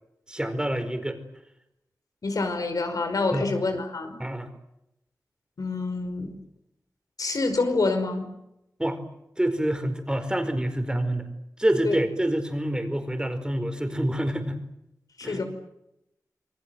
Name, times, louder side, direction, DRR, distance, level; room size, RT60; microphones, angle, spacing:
voice 1, 0.3-1.2 3.3-3.5 4.2-4.5 8.8-9.0 9.4-11.3 11.6-14.6 15.2-15.4, right 1 dB, 15° right, 8 dB, 4.8 m, -27 dB
voice 2, 2.2-4.2 5.6-6.3 7.2-8.3 11.8-12.0 15.2-15.4, left 3 dB, 75° left, 7 dB, 5.5 m, -27 dB
27.5 x 23.0 x 7.8 m, 0.83 s
wide cardioid pair, 90°, 6 cm